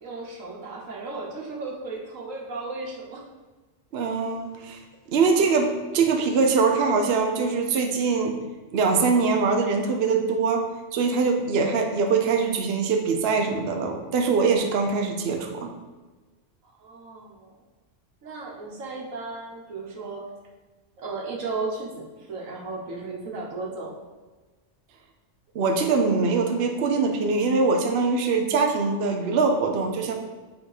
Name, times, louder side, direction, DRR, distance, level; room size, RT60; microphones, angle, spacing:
voice 1, 0.0-3.2 5.3-5.7 16.7-17.5 18.2-20.2 21.0-24.0, right 3 dB, 85° right, -1 dB, 1.6 m, -35 dB
voice 2, 3.9-4.8 5.1-8.4 8.7-15.7 25.5-30.1, right 4 dB, 55° right, 3 dB, 0.9 m, -23 dB
7.6 x 3.7 x 4.8 m, 1.3 s
omnidirectional pair, 1.3 m